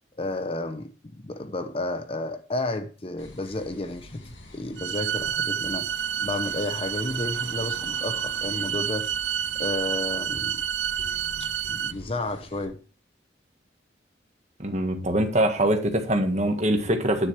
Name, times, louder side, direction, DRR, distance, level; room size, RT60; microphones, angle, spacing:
voice 1, 0.2-5.9 6.2-9.1 9.5-10.6 11.4-12.8, left 2 dB, 30° left, 0.7 m, -32 dB
sound 1, 3.2-12.6, left 2 dB, 85° left, 2.4 m, -45 dB
sound 2, 4.8-11.9, right 9 dB, 70° right, 0.5 m, -29 dB
voice 2, 14.6-17.3, right 1 dB, 35° right, 1.6 m, -23 dB
9.8 x 9.7 x 3.3 m
head